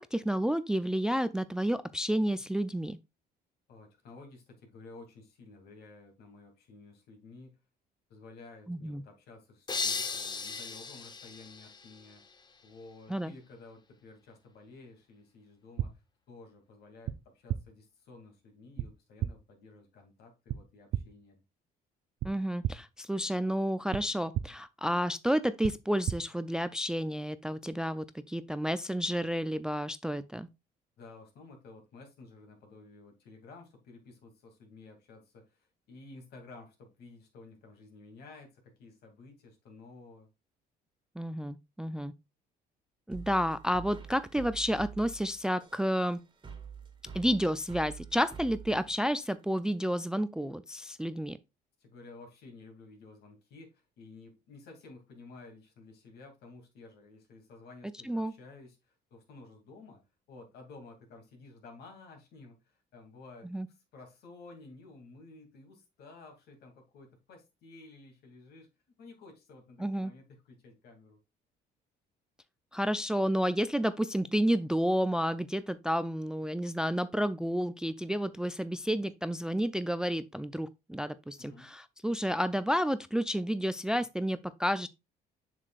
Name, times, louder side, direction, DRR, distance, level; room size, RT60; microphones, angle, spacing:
voice 1, 0.0-3.0 8.7-9.0 13.1-13.3 22.2-30.5 41.2-42.1 43.1-46.2 47.1-51.4 58.0-58.3 63.4-63.7 69.8-70.1 72.7-84.9, equal, 5° right, 0.4 m, -31 dB
voice 2, 3.7-7.6 8.1-12.2 12.6-16.0 16.3-21.4 31.0-40.3 51.8-60.0 60.3-68.7 69.0-71.2 81.4-81.7, left 3 dB, 70° left, 2.7 m, -53 dB
sound 1, 9.7-12.5, left 5 dB, 25° left, 0.8 m, -37 dB
sound 2, 15.8-15.9 17.0-17.2 17.5-17.6 18.8-18.9 19.2-19.3 20.5-20.6 20.9-21.0 22.2-22.3 22.6-22.7 23.9-24.0 24.3-24.5 25.6-25.7 26.1-26.2, right 12 dB, 60° right, 0.5 m, -31 dB
sound 3, 43.1-49.8, right 7 dB, 25° right, 1.7 m, -47 dB
7.3 x 6.6 x 2.4 m
cardioid pair, 110°, 17 cm